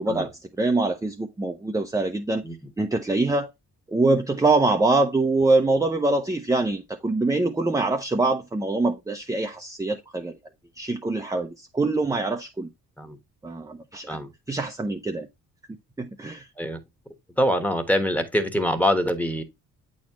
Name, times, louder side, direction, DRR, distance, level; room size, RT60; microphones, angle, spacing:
voice 1, 0.0-2.4 2.8-3.5 3.9-10.3 10.8-12.7 13.4-14.1 14.5-15.3 16.0-16.5, right 2 dB, 10° right, 0.6 m, -24 dB
voice 2, 17.4-19.4, equal, 5° left, 1.3 m, -24 dB
8.4 x 4.3 x 3.0 m
cardioid pair, 90°, 30 cm